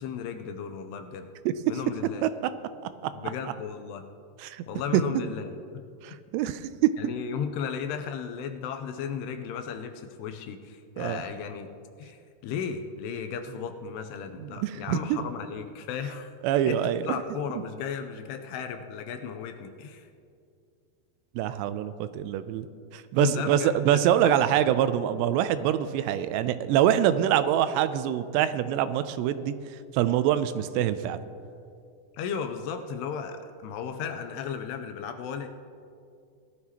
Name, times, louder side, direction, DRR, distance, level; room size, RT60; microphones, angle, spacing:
voice 1, 0.0-1.3 1.7-2.3 3.1-4.0 4.7-5.4 5.7-5.8 6.1-6.2 7.0-11.7 12.0-16.3 16.7-20.1 23.2-24.6 32.1-35.5, left 7 dB, 80° left, 7 dB, 2.6 m, -35 dB
voice 2, 6.0-6.9 11.0-11.2 14.4-15.3 16.4-17.0 21.4-22.7 22.9-29.5 29.9-31.2, right 11 dB, 85° right, 12 dB, 2.7 m, -25 dB
19.0 x 12.5 x 2.9 m, 2.4 s
omnidirectional pair, 5.0 m